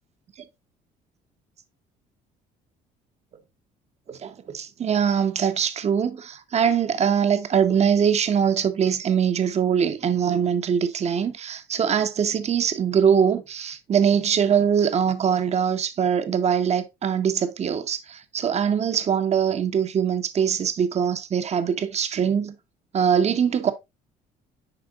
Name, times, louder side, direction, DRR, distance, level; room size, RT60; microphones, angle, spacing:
voice 1, 4.1-22.5 22.9-23.7, right 7 dB, 40° right, 1.0 m, -22 dB
10.0 x 4.3 x 2.5 m
cardioid pair, 110°, 17 cm